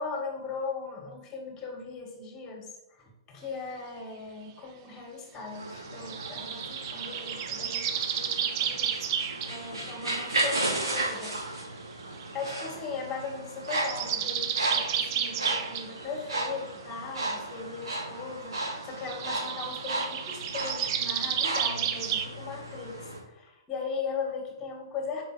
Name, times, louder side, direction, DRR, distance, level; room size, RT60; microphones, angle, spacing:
voice 1, 0.0-11.4 11.7-11.9 12.3-25.2, left 4 dB, 20° left, 1 dB, 2.1 m, -38 dB
sound 1, 5.5-23.2, right 2 dB, 80° right, 2.4 m, -35 dB
sound 2, 6.1-9.5 10.1-11.2 12.2-12.3 13.6-15.9 19.1-22.3, right 8 dB, 45° right, 0.7 m, -31 dB
5.4 x 5.0 x 6.1 m, 0.95 s
figure-of-eight pair, 115°, 2 cm